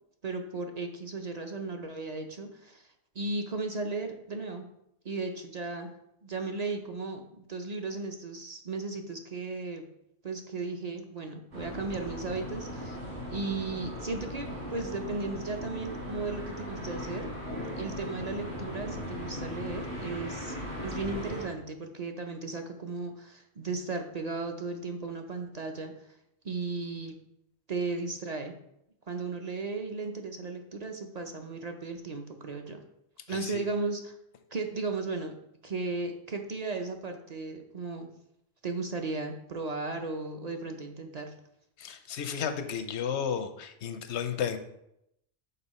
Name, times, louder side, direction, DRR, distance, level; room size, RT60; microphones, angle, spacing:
voice 1, 0.2-2.9 3.1-4.7 5.0-5.9 6.2-7.2 7.5-9.9 10.2-13.0 13.3-17.3 17.8-25.9 26.4-27.2 27.7-28.5 29.1-32.8 33.3-34.1 34.5-35.3 35.6-38.1 38.6-41.3, right 3 dB, 45° right, 4 dB, 0.6 m, -35 dB
sound 1, 11.5-21.5, equal, 70° right, 2.3 m, -38 dB
voice 2, 33.3-33.6 41.8-44.6, left 7 dB, 85° left, 9 dB, 0.9 m, -33 dB
5.5 x 5.5 x 4.1 m, 0.79 s
omnidirectional pair, 1.1 m